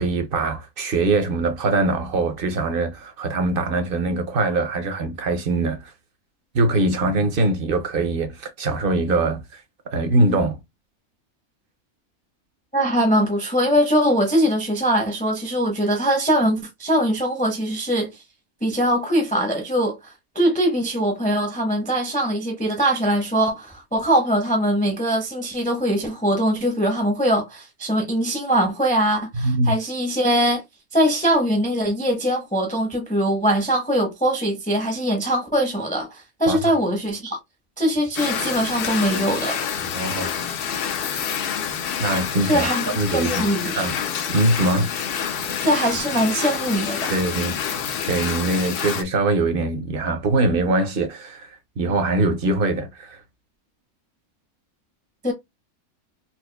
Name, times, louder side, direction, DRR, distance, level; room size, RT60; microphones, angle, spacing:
voice 1, 0.0-5.9 6.5-9.6 9.9-10.6 29.3-29.8 36.5-36.6 39.9-40.3 42.0-44.0 44.3-44.9 47.1-47.6 48.1-51.5 51.8-53.2, right 2 dB, 55° right, 0.7 m, -22 dB
voice 2, 12.7-18.1 18.6-30.6 30.9-37.4 37.8-39.6 42.4-43.9 45.6-47.2 55.2-55.3, equal, 10° left, 0.5 m, -22 dB
sound 1, 38.2-49.0, left 8 dB, 70° left, 0.5 m, -27 dB
4.2 x 2.4 x 2.2 m
omnidirectional pair, 1.5 m